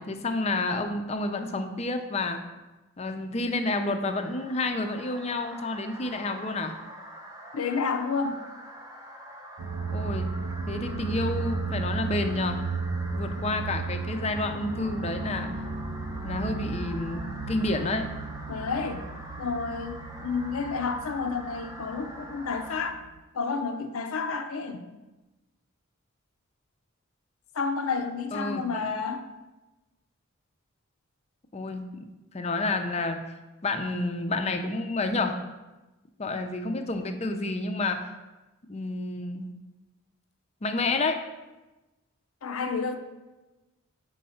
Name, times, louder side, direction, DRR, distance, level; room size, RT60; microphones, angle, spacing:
voice 1, 0.0-2.4 3.0-6.8 9.9-10.4 10.7-12.6 13.1-15.5 16.2-18.1 28.3-28.9 31.5-32.1 32.3-33.2 33.6-35.4 36.2-38.1 38.7-39.5 40.6-41.2, left 2 dB, 30° left, 6 dB, 0.5 m, -29 dB
sound 1, 3.5-22.9, right 1 dB, 15° right, 0.6 m, -45 dB
voice 2, 7.5-8.4 18.5-19.0 19.4-23.0 23.3-24.8 27.5-29.3 42.4-43.0, left 4 dB, 85° left, 7 dB, 0.5 m, -30 dB
sound 2, 9.6-23.2, right 4 dB, 80° right, 0.5 m, -34 dB
4.6 x 4.3 x 5.6 m, 1.1 s
head